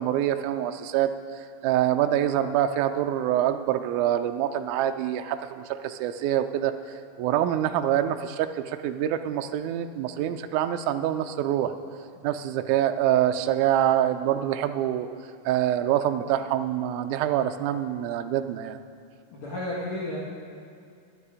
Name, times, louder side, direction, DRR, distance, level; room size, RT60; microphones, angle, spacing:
voice 1, 0.0-11.7 12.2-15.1 15.5-18.8, right 11 dB, 80° right, 8 dB, 1.8 m, -25 dB
voice 2, 19.3-20.2, left 1 dB, 50° left, -6 dB, 2.0 m, -32 dB
12.5 x 11.5 x 4.9 m, 2.4 s
omnidirectional pair, 4.0 m